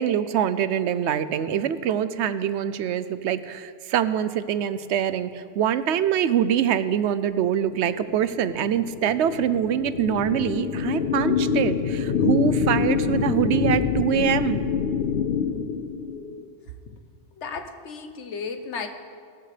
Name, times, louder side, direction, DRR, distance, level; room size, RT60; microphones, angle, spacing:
voice 1, 0.0-14.6, right 9 dB, 80° right, 13 dB, 0.9 m, -24 dB
sound 1, 7.7-16.5, left 6 dB, 65° left, 0.8 m, -26 dB
voice 2, 17.4-18.9, left 5 dB, 85° left, 7 dB, 1.3 m, -34 dB
18.0 x 13.5 x 3.3 m, 2.1 s
omnidirectional pair, 1.2 m